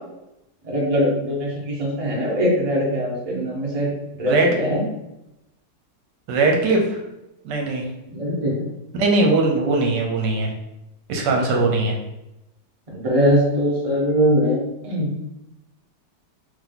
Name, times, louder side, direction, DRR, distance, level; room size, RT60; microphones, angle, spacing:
voice 1, 0.6-3.9 4.2-4.8 8.1-8.5 11.2-11.6 12.9-15.1, equal, 25° right, -4 dB, 0.9 m, -22 dB
voice 2, 6.3-7.0 7.4-7.8 8.9-10.5 11.1-11.9, right 3 dB, 80° right, 1 dB, 1.3 m, -20 dB
3.7 x 2.8 x 3.7 m, 0.89 s
omnidirectional pair, 1.9 m